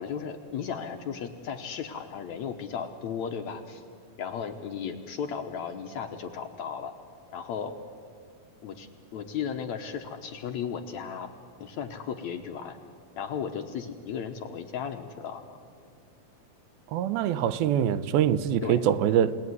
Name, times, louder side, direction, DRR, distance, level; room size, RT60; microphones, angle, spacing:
voice 1, 0.0-3.8 4.2-6.9 7.3-7.8 8.6-11.3 11.6-12.8 13.2-15.6 18.6-18.8, left 7 dB, 70° left, 1.9 m, -35 dB
voice 2, 16.9-19.4, right 10 dB, 85° right, 2.7 m, -24 dB
29.0 x 18.5 x 9.7 m
omnidirectional pair, 4.2 m